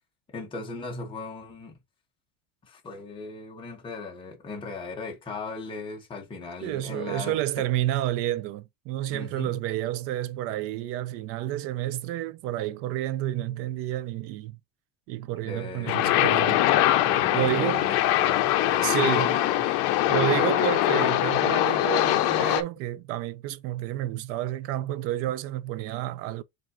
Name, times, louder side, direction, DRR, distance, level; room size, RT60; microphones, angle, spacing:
voice 1, 0.3-1.7 2.6-7.6 9.1-9.6 15.4-16.0 17.0-19.6 19.9-20.4 22.0-22.1, left 3 dB, 15° left, 1.1 m, -38 dB
voice 2, 6.6-14.6 15.1-16.6 17.3-17.9 18.8-19.3 20.1-26.4, right 13 dB, 50° right, 0.5 m, -30 dB
sound 1, 15.9-22.6, left 14 dB, 55° left, 0.7 m, -22 dB
7.4 x 2.6 x 2.5 m
cardioid pair, 155°, 30 cm